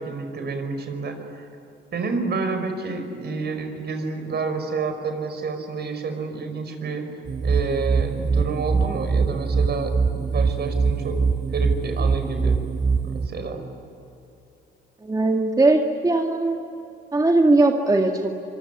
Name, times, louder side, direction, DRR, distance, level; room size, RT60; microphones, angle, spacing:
voice 1, 0.0-1.5 1.9-7.0 7.4-11.2 11.5-12.6 13.0-13.6, right 4 dB, 55° right, 6 dB, 5.5 m, -29 dB
sound 1, 7.3-13.3, right 5 dB, 35° right, 1.6 m, -23 dB
voice 2, 15.0-16.6 17.1-18.3, right 2 dB, 20° right, 2 dB, 2.1 m, -19 dB
25.0 x 24.5 x 9.8 m, 2.8 s
cardioid pair, 90°, 20 cm